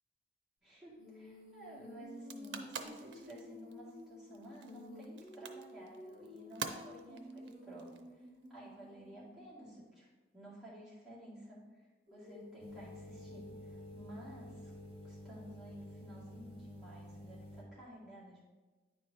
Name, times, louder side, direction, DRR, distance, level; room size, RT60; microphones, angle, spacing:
voice 1, 0.6-14.7 15.0-18.5, right 1 dB, ahead, -9 dB, 2.0 m, -53 dB
Female singing, 1.0-9.9 12.1-16.3, left 1 dB, 55° right, 2.0 m, -53 dB
sound 1, 2.1-8.5, right 5 dB, 90° right, 0.5 m, -47 dB
sound 2, 12.6-17.6, equal, 30° right, 1.2 m, -51 dB
9.5 x 4.6 x 2.7 m, 1.3 s
head